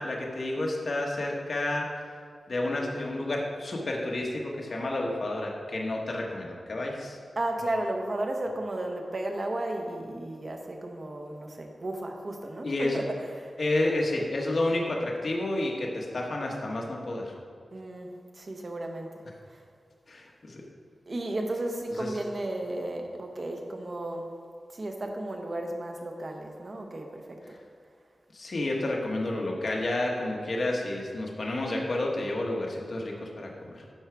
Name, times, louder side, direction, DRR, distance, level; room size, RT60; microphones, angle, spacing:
voice 1, 0.0-1.9 2.5-7.2 12.6-13.0 13.6-17.3 20.1-20.6 22.0-22.1 28.3-33.8, left 2 dB, 50° left, -1 dB, 1.4 m, -30 dB
voice 2, 7.3-13.5 17.7-19.2 19.5-19.6 21.1-24.3 24.7-27.6, right 1 dB, 45° right, 2 dB, 1.1 m, -34 dB
11.5 x 4.8 x 4.7 m, 2.1 s
wide cardioid pair, 105°, 0 cm